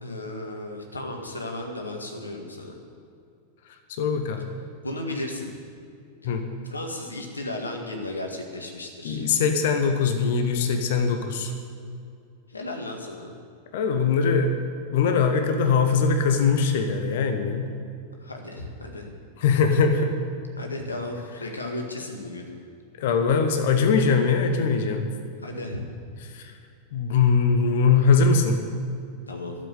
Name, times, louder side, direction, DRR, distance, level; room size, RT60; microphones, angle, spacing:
voice 1, 0.0-2.8 4.8-5.5 6.2-6.4 6.7-9.3 12.5-13.4 18.2-19.2 20.6-22.5 25.4-25.8 29.3-29.6, left 1 dB, 80° left, 2 dB, 1.8 m, -34 dB
voice 2, 3.9-4.4 6.2-6.4 9.0-11.5 13.7-14.5 14.9-17.7 19.4-20.1 23.0-25.1 26.3-26.5 26.9-28.6, left 5 dB, 55° left, 6 dB, 1.1 m, -21 dB
11.5 x 7.7 x 9.7 m, 2.4 s
figure-of-eight pair, 90°, 0 cm